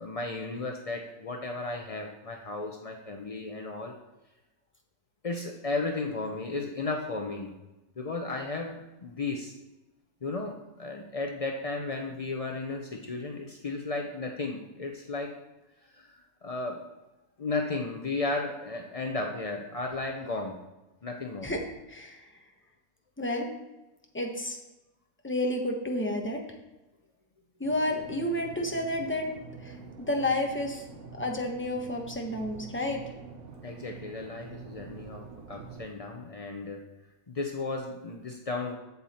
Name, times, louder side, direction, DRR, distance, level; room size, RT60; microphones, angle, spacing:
voice 1, 0.0-3.9 5.2-7.5 8.0-9.5 10.2-15.3 15.9-16.8 17.4-20.5 21.0-21.6 33.6-36.8 37.3-38.8, left 3 dB, 60° left, 2 dB, 0.3 m, -34 dB
voice 2, 21.9-22.3 23.2-23.5 24.1-24.6 25.2-26.4 27.6-29.3 29.6-30.9 31.1-33.1, left 1 dB, 10° left, 2 dB, 0.8 m, -30 dB
sound 1, 27.6-35.9, right 5 dB, 65° right, 1.2 m, -46 dB
7.9 x 7.2 x 4.3 m, 1.0 s
omnidirectional pair, 1.6 m